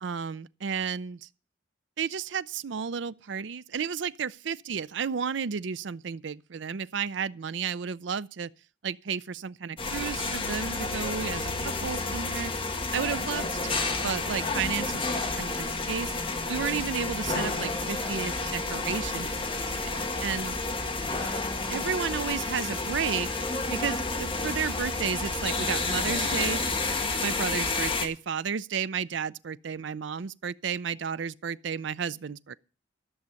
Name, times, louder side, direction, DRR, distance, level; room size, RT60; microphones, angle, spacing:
voice 1, 0.0-1.3 2.0-8.5 8.8-12.5 12.9-16.1 16.5-19.5 19.8-20.6 21.7-26.6 27.2-32.5, right 6 dB, 75° right, 0.5 m, -32 dB
sound 1, 9.8-28.1, left 3 dB, 30° left, 1.4 m, -30 dB
13.5 x 6.4 x 6.9 m
head